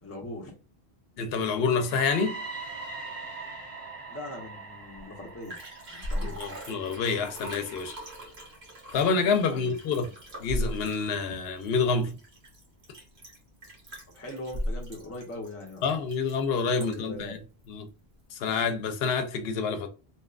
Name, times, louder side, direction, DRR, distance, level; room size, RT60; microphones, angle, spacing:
voice 1, 0.0-0.5 4.1-5.6 5.9-6.3 9.5-9.7 14.1-16.0 16.6-17.4, left 1 dB, 15° left, 0.6 m, -41 dB
voice 2, 1.2-2.4 6.2-8.0 8.9-10.0 10.4-12.2 15.8-17.4 17.7-17.9 18.3-19.9, left 5 dB, 70° left, 0.8 m, -27 dB
sound 1, 1.5-9.4, right 3 dB, 40° right, 0.9 m, -43 dB
Liquid, 5.0-5.1 5.3-17.2 17.6-17.7, equal, 80° right, 1.4 m, -38 dB
2.8 x 2.2 x 2.3 m
omnidirectional pair, 1.1 m